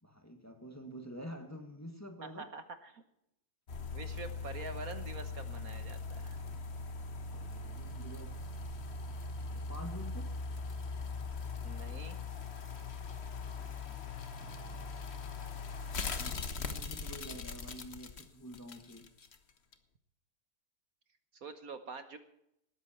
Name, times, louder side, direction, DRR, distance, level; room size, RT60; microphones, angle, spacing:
voice 1, 0.0-2.5 7.3-8.4 9.5-10.4 13.6-14.9 15.9-19.1, equal, 10° left, 4 dB, 1.7 m, -48 dB
voice 2, 2.2-3.0 3.9-6.4 11.6-12.2 21.3-22.2, right 4 dB, 60° right, 9 dB, 1.5 m, -46 dB
sound 1, 3.7-19.4 19.7-19.8, left 4 dB, 40° left, 1.4 m, -41 dB
19.5 x 13.5 x 4.4 m, 0.78 s
omnidirectional pair, 1.9 m